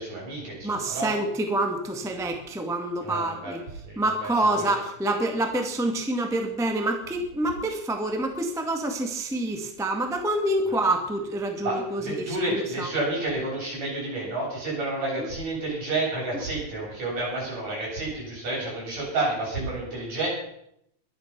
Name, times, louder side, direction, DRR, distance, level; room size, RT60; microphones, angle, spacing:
voice 1, 0.0-1.1 3.0-3.6 3.8-4.3 11.6-20.3, right 2 dB, 60° right, -5 dB, 9.5 m, -30 dB
voice 2, 0.6-3.6 3.9-12.9 15.2-15.3 16.3-16.4, right 1 dB, ahead, 4 dB, 1.1 m, -27 dB
22.5 x 9.8 x 6.0 m, 0.75 s
omnidirectional pair, 3.6 m